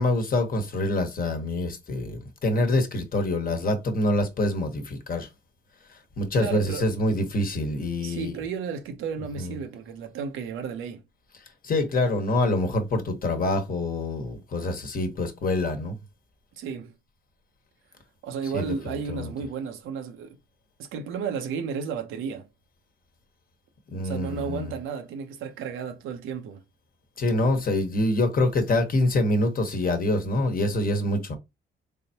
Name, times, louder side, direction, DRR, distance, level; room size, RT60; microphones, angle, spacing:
voice 1, 0.0-5.3 5.9-8.4 9.4-9.5 11.6-16.0 18.5-19.3 23.9-24.8 27.2-31.4, left 1 dB, 45° left, 1.2 m, -26 dB
voice 2, 6.3-6.9 8.0-11.0 16.6-16.9 18.2-20.4 20.8-22.5 24.0-26.6, right 6 dB, 90° right, 0.8 m, -33 dB
3.5 x 3.4 x 2.8 m
cardioid pair, 90°, 20 cm